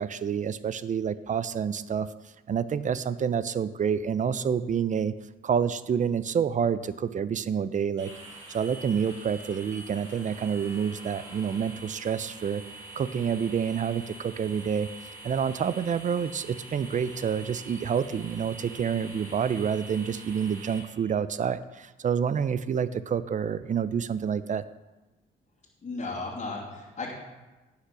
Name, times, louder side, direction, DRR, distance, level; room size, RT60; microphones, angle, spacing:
voice 1, 0.0-2.1 2.5-5.1 5.4-8.1 8.5-12.6 13.0-14.9 15.2-24.6, right 7 dB, 40° right, 15 dB, 0.5 m, -28 dB
sound 1, 8.0-20.8, right 2 dB, 90° right, 2.1 m, -45 dB
voice 2, 25.8-27.1, left 3 dB, 35° left, -4 dB, 2.6 m, -35 dB
10.0 x 5.7 x 5.8 m, 1.1 s
cardioid pair, 90°, 20 cm